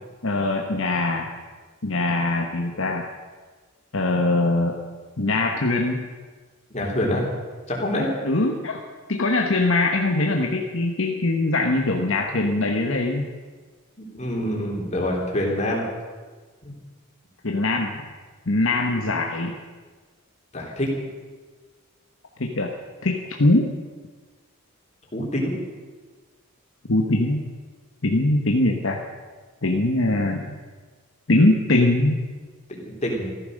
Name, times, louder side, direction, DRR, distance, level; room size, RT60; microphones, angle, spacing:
voice 1, 0.2-1.3 1.8-3.0 3.9-4.8 5.2-6.1 8.2-8.8 9.1-13.3 17.4-18.0 18.5-19.6 22.4-22.7 23.0-23.7 26.9-27.5 28.0-29.0 29.6-30.5 31.3-32.2, left 2 dB, 65° left, 2 dB, 1.2 m, -22 dB
voice 2, 6.7-7.2 7.7-8.1 14.1-15.9 16.6-16.7 20.5-20.9 25.1-25.6 32.7-33.3, left 1 dB, 30° left, -2 dB, 3.5 m, -26 dB
15.0 x 13.5 x 6.5 m, 1.4 s
head